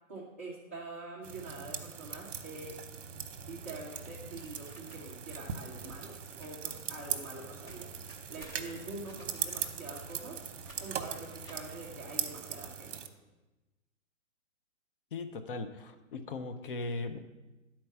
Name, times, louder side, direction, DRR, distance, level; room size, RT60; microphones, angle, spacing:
voice 1, 0.1-2.8 3.5-7.9 8.3-10.4 10.8-13.0, right 2 dB, 10° right, -8 dB, 0.4 m, -45 dB
sound 1, 1.2-13.1, right 7 dB, 60° right, 0.9 m, -41 dB
sound 2, 4.4-6.6 6.9-13.0, right 1 dB, 15° left, 1.0 m, -58 dB
voice 2, 15.1-17.2, left 3 dB, 40° left, 9 dB, 0.6 m, -38 dB
11.0 x 4.4 x 5.8 m, 1.1 s
hypercardioid pair, 160°, 42 cm